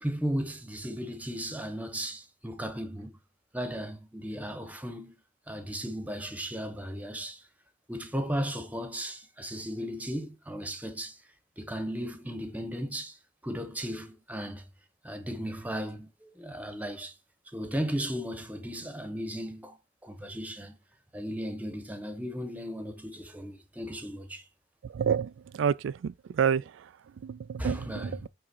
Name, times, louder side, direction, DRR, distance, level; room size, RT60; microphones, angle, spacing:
voice 1, 0.0-3.2 3.5-5.2 5.5-7.4 7.9-11.2 11.6-13.2 13.4-14.6 15.0-17.1 17.5-19.8 20.0-20.7 21.1-24.4 27.6-28.2, equal, 10° right, 1.1 m, -35 dB
voice 2, 24.8-26.6 27.2-28.3, right 7 dB, 80° right, 0.3 m, -29 dB
8.8 x 3.6 x 4.5 m
head